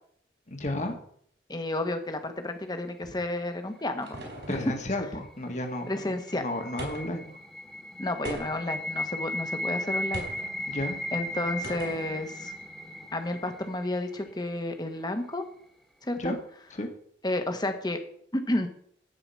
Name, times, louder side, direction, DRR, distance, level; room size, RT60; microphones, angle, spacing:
voice 1, 0.5-1.0 4.5-5.9 6.3-7.2 10.7-11.0 16.2-16.4 16.8-16.9, left 1 dB, 40° left, 4 dB, 1.6 m, -32 dB
voice 2, 1.5-4.2 4.5-4.6 5.9-6.4 8.0-10.2 11.1-12.5 13.1-15.4 16.0-16.4 17.2-18.0 18.3-18.7, left 1 dB, 20° left, 6 dB, 1.2 m, -31 dB
sound 1, 3.3-4.9 6.8-7.3 8.2-8.8 10.1-10.5 11.6-12.1, right 1 dB, 70° right, 4.0 m, -39 dB
sound 2, 5.5-14.5, left 1 dB, ahead, 1.5 m, -36 dB
12.0 x 4.8 x 8.4 m, 0.64 s
head